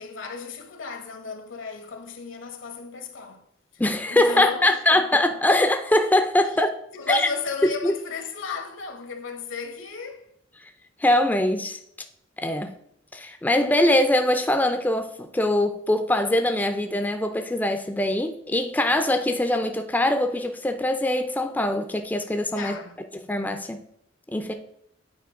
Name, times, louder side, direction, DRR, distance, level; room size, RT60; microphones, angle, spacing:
voice 1, 0.0-3.4 3.7-5.0 6.9-10.2 22.5-23.0, left 5 dB, 75° left, 1.0 m, -34 dB
voice 2, 3.8-6.7 7.1-7.3 7.8-7.9 11.0-11.8 12.4-12.7 13.1-22.7 23.3-23.8 24.3-24.5, left 1 dB, 10° left, 0.4 m, -22 dB
8.2 x 4.5 x 3.6 m
head